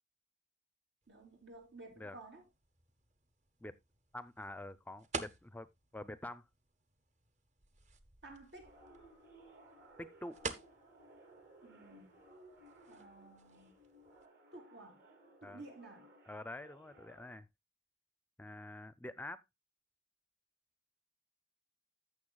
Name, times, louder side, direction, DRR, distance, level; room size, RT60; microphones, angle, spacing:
sound 1, 1.0-14.3, right 4 dB, 40° right, 0.9 m, -51 dB
voice 1, 1.1-2.4 8.2-8.8 11.6-12.2 12.9-13.7 14.5-15.0 15.4-16.1, right 2 dB, 85° right, 3.4 m, -54 dB
voice 2, 4.1-5.7 5.9-6.5 10.0-10.4 15.4-15.6 16.3-17.5 18.4-19.4, left 1 dB, 10° left, 0.4 m, -46 dB
sound 2, 8.6-17.4, right 1 dB, 65° right, 2.8 m, -60 dB
15.0 x 6.7 x 2.3 m
head